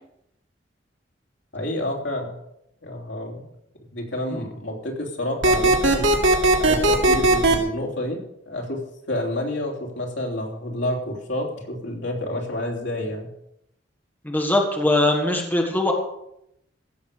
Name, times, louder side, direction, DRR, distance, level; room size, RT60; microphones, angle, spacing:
voice 1, 1.5-2.3 2.8-3.4 3.9-6.1 6.6-13.3, left 1 dB, 70° left, 0 dB, 3.5 m, -29 dB
sound 1, 5.4-7.6, right 2 dB, 85° right, 2.4 m, -17 dB
voice 2, 14.2-15.9, left 1 dB, 10° left, 1 dB, 1.7 m, -21 dB
16.0 x 7.1 x 6.8 m, 0.78 s
head